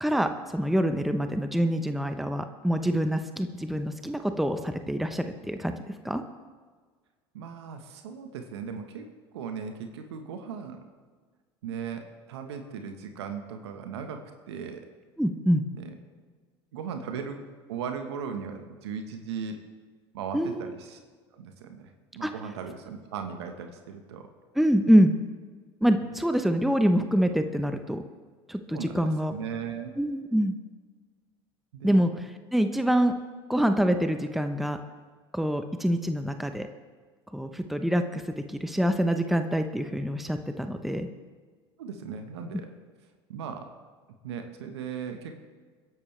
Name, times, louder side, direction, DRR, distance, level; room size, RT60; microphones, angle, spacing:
voice 1, 0.0-6.2 15.2-15.6 20.3-20.7 22.2-22.3 24.6-25.1 25.8-28.0 28.5-29.3 30.0-30.6 31.8-33.1 33.5-34.8 35.3-36.7 37.3-41.1, equal, ahead, 7 dB, 1.0 m, -25 dB
voice 2, 7.3-9.1 9.3-10.8 11.6-14.8 15.7-15.9 16.7-17.4 17.7-19.6 20.1-21.0 21.3-24.3 26.0-26.1 28.7-29.9 31.7-32.0 41.8-42.7 43.3-43.7 44.2-45.4, right 6 dB, 80° right, 6 dB, 1.4 m, -37 dB
22.5 x 11.0 x 3.4 m, 1.5 s
hypercardioid pair, 75°, 14 cm